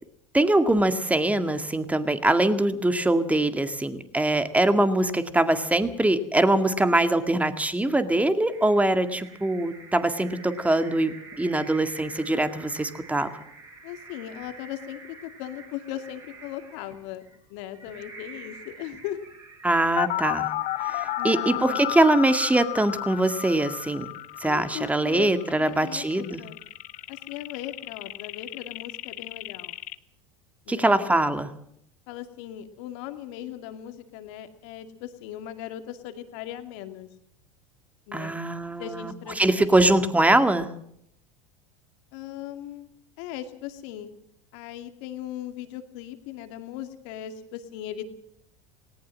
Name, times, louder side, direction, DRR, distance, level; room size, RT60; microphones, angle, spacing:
voice 1, 0.3-13.3 19.6-20.5 20.8-24.1 24.4-26.4 30.7-31.5 38.1-40.7, right 1 dB, 10° right, 9 dB, 2.0 m, -23 dB
sound 1, 8.5-22.0, right 3 dB, 30° right, 7.2 m, -47 dB
voice 2, 13.8-17.2 17.5-19.2 21.2-21.8 24.4-26.6 27.1-29.7 30.7-31.0 32.1-37.1 38.1-38.4 38.8-39.8 42.1-42.9 43.2-44.1 44.5-48.1, left 11 dB, 65° left, 8 dB, 2.4 m, -38 dB
sound 2, 20.0-30.0, left 16 dB, 50° left, 1.0 m, -33 dB
18.5 x 18.5 x 7.5 m, 0.71 s
hypercardioid pair, 85°, 17 cm